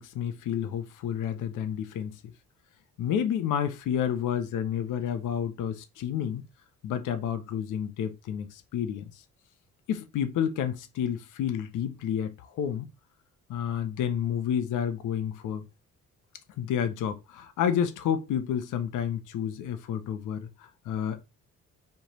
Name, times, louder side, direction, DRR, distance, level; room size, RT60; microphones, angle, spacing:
voice 1, 0.0-2.2 3.0-6.4 6.8-9.1 9.9-12.9 13.5-15.7 16.6-21.3, left 9 dB, 85° left, 0.9 m, -30 dB
4.4 x 3.4 x 3.0 m
cardioid pair, 90°, 30 cm